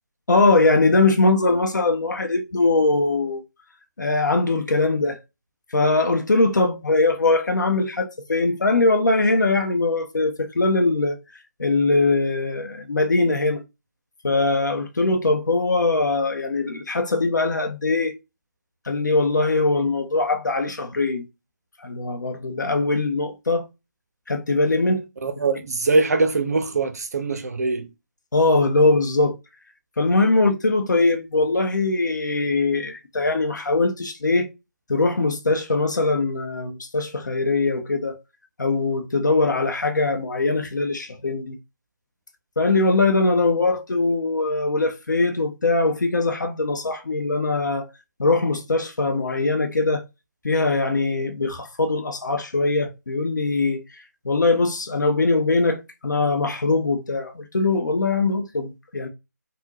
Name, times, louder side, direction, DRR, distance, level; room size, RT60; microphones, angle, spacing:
voice 1, 0.3-3.4 4.0-5.2 5.7-11.2 11.6-13.6 14.2-18.1 18.9-21.2 21.8-23.7 24.3-25.0 28.3-29.3 30.0-34.5 34.9-38.2 38.6-41.5 42.6-47.9 48.2-50.0 50.4-53.8 54.2-59.1, left 3 dB, 70° left, 0.7 m, -21 dB
voice 2, 25.2-27.9, right 3 dB, 55° right, 0.5 m, -22 dB
3.6 x 2.1 x 2.8 m
figure-of-eight pair, 150°, 10 cm